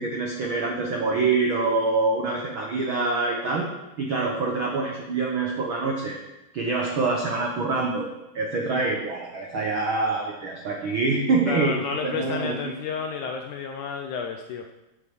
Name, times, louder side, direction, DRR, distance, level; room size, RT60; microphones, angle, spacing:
voice 1, 0.0-3.7 4.0-6.2 6.5-8.1 8.3-12.7, right 3 dB, 75° right, 0 dB, 1.1 m, -25 dB
voice 2, 11.5-14.7, left 6 dB, 75° left, 5 dB, 1.9 m, -31 dB
9.2 x 8.4 x 6.5 m, 0.96 s
omnidirectional pair, 4.2 m